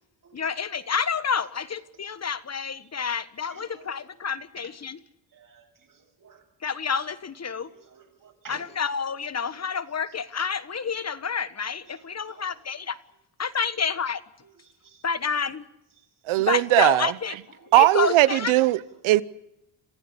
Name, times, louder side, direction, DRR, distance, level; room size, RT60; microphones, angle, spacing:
voice 1, 0.3-5.0 6.6-7.7 8.5-13.0 13.4-14.2 15.0-15.6 16.5-17.3 17.8-18.5, left 6 dB, 35° left, 1.4 m, -29 dB
voice 2, 3.5-4.0 5.3-6.5 7.7-8.7 12.2-12.5 14.6-15.1 17.6-17.7, right 6 dB, 45° right, 7.4 m, -52 dB
voice 3, 16.3-17.1 17.7-19.2, right 17 dB, 85° right, 1.0 m, -19 dB
27.5 x 15.5 x 8.6 m
cardioid pair, 95°, 47 cm